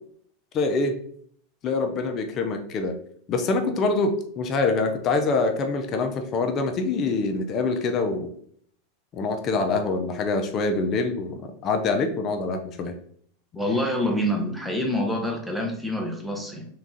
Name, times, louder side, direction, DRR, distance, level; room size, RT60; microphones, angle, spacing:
voice 1, 0.5-1.0 1.6-3.0 3.3-8.3 9.1-12.9, left 3 dB, 40° left, 6 dB, 0.6 m, -25 dB
voice 2, 13.5-16.7, equal, ahead, 1 dB, 0.9 m, -26 dB
3.6 x 2.9 x 3.8 m, 0.63 s
hypercardioid pair, 115°, 0 cm